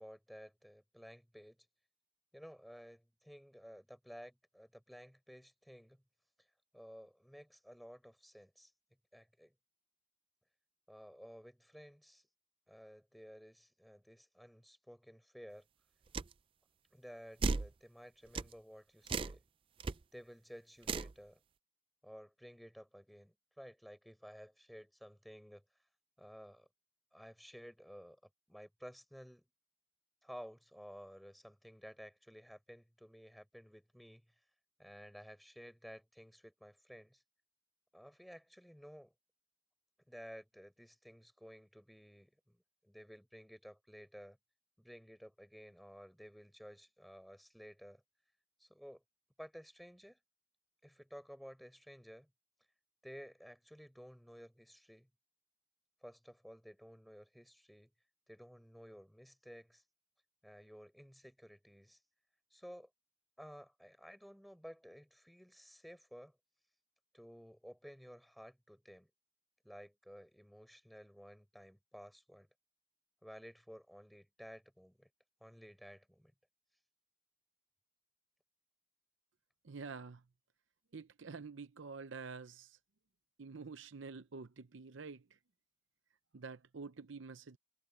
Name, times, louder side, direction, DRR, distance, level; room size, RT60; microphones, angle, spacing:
voice 1, 0.0-1.6 2.3-6.0 6.7-8.7 9.1-9.5 10.9-12.2 12.7-15.7 16.9-19.4 20.1-21.4 22.0-25.6 26.2-26.7 27.1-28.2 28.5-29.4 30.2-34.2 34.8-37.2 37.9-39.1 40.1-44.4 44.8-48.0 48.6-49.0 49.4-50.2 50.8-52.3 53.0-55.1 56.0-57.9 58.3-59.8 60.4-62.0 62.5-62.9 63.4-66.4 67.1-69.1 69.6-72.5 73.2-75.1 75.4-76.3, equal, ahead, 4.4 m, -54 dB
sound 1, 16.1-16.3 17.4-17.7 18.4-18.5 19.1-19.4 19.8-19.9 20.8-21.1, right 4 dB, 25° right, 0.3 m, -35 dB
voice 2, 79.6-80.2 80.9-82.8 83.4-85.3 86.3-87.6, right 4 dB, 65° right, 0.7 m, -48 dB
head